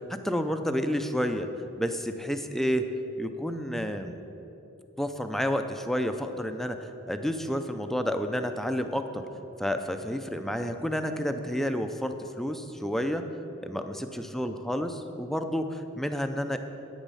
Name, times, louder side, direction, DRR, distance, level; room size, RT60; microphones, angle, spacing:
voice 1, 0.0-1.5 1.8-2.9 3.2-4.2 5.0-9.2 9.6-13.2 13.7-16.6, equal, ahead, 7 dB, 0.5 m, -30 dB
10.5 x 9.1 x 5.5 m, 3.0 s
head